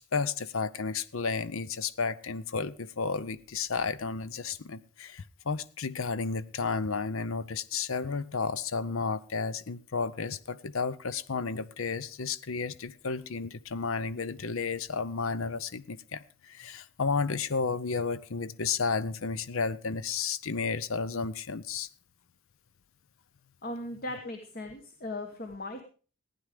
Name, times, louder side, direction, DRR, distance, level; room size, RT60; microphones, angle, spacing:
voice 1, 0.0-21.9, left 4 dB, 65° left, 17 dB, 0.7 m, -32 dB
voice 2, 23.6-25.8, left 1 dB, 40° left, 6 dB, 1.2 m, -38 dB
15.5 x 9.8 x 4.9 m, 0.40 s
head